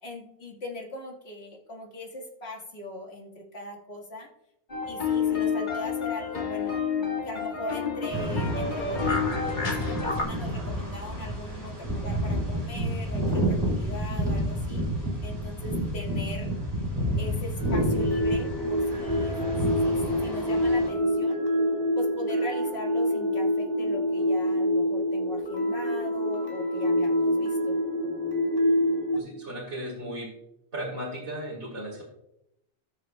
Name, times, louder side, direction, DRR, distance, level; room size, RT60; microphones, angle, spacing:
voice 1, 0.0-4.3 4.9-6.9 7.2-14.8 15.2-16.5 17.2-19.4 19.8-21.4 22.0-27.8, left 1 dB, 65° left, -1 dB, 2.0 m, -40 dB
sound 1, 4.7-10.2, left 6 dB, 45° left, 1.5 m, -29 dB
sound 2, 8.1-20.9, equal, 20° right, 2.5 m, -30 dB
sound 3, 17.6-29.2, equal, 20° left, 1.7 m, -26 dB
voice 2, 29.1-30.3 30.7-32.0, equal, 55° right, -5 dB, 2.7 m, -36 dB
17.5 x 6.7 x 2.2 m, 0.82 s
omnidirectional pair, 1.2 m